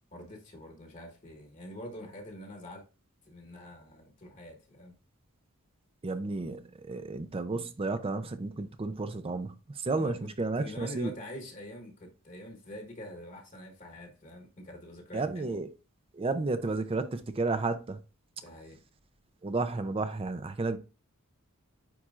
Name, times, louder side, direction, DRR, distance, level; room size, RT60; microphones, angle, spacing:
voice 1, 0.1-2.9 3.3-5.0 10.0-10.3 10.6-15.6 18.4-18.8, equal, 35° left, 1.2 m, -45 dB
voice 2, 6.0-11.1 15.1-15.7 16.1-18.0 19.4-20.8, right 3 dB, 25° right, 0.4 m, -32 dB
9.3 x 4.2 x 2.4 m
head